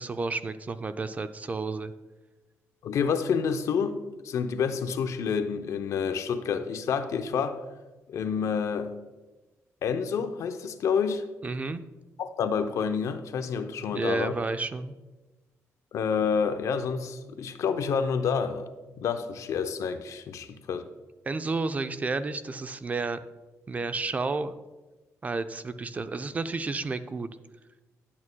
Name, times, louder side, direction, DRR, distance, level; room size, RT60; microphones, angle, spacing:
voice 1, 0.0-1.9 11.4-11.8 13.9-14.9 21.3-23.2 23.7-24.5 25.2-27.3, right 3 dB, 25° right, 0.4 m, -31 dB
voice 2, 2.8-7.6 8.1-8.9 9.8-11.2 12.2-14.3 15.9-18.7 19.0-20.8, left 6 dB, 65° left, 0.6 m, -28 dB
11.0 x 8.5 x 2.2 m
cardioid pair, 110°, 6 cm